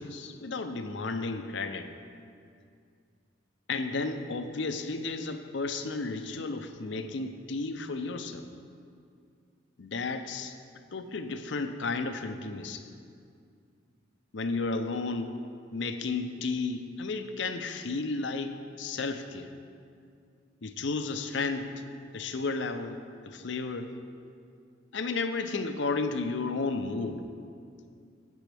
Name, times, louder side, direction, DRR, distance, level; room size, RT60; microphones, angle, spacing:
voice 1, 0.0-1.9 3.7-8.5 9.8-10.6 10.9-12.9 14.3-15.3 15.7-19.5 20.6-21.8 22.1-23.0 23.2-23.9 24.9-27.3, left 3 dB, 65° left, 8 dB, 0.6 m, -33 dB
12.5 x 8.4 x 3.4 m, 2.3 s
head